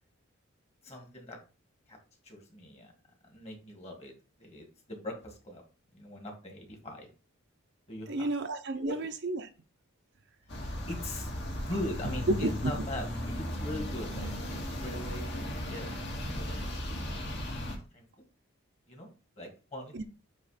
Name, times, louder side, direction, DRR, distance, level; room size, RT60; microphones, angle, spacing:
voice 1, 0.8-1.4 1.9-2.0 2.2-2.9 3.2-4.1 4.4-5.6 5.9-7.1 7.9-8.3 8.8-8.9 10.9-16.0 16.3-16.6 17.9-18.1 18.9-19.1 19.4-19.9, left 1 dB, 30° left, 2.1 m, -41 dB
voice 2, 8.1-9.5 12.3-12.7 19.9-20.0, right 2 dB, 55° right, 0.7 m, -31 dB
sound 1, 10.5-17.8, left 1 dB, 50° left, 2.1 m, -36 dB
8.9 x 3.1 x 5.0 m
head